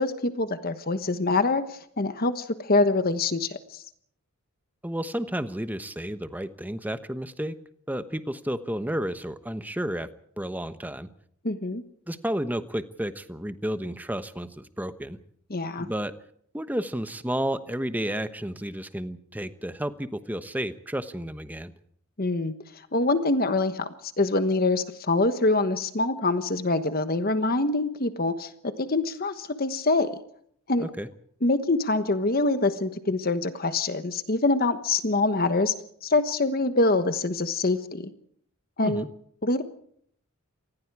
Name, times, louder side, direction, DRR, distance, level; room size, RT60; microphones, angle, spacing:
voice 1, 0.0-3.8 11.4-11.8 15.5-15.9 22.2-22.5 22.9-23.9 24.2-30.1 30.7-30.9 31.4-35.7 36.0-38.1 38.8-39.0 39.4-39.6, left 2 dB, 45° left, 10 dB, 1.2 m, -25 dB
voice 2, 4.8-7.5 7.9-10.1 10.4-11.1 12.1-15.2 15.8-16.1 16.5-21.7 30.8-31.1 38.8-39.1, right 1 dB, 10° right, 11 dB, 1.1 m, -31 dB
27.0 x 20.0 x 4.8 m, 0.65 s
head